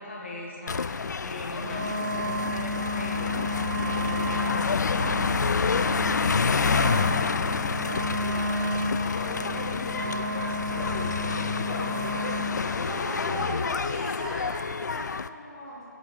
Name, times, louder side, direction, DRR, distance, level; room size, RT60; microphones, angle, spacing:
voice 1, 0.0-3.4 3.8-12.2 12.6-13.6, left 1 dB, 35° left, -3 dB, 1.8 m, -40 dB
sound 1, 0.7-15.3, left 5 dB, 65° left, 0.4 m, -28 dB
Wind instrument woodwind instrument, 1.6-12.6, left 1 dB, 80° right, 2.5 m, -32 dB
voice 2, 12.6-15.8, equal, 15° left, -10 dB, 2.6 m, -37 dB
17.0 x 6.3 x 5.0 m, 2.6 s
hypercardioid pair, 170°, 10 cm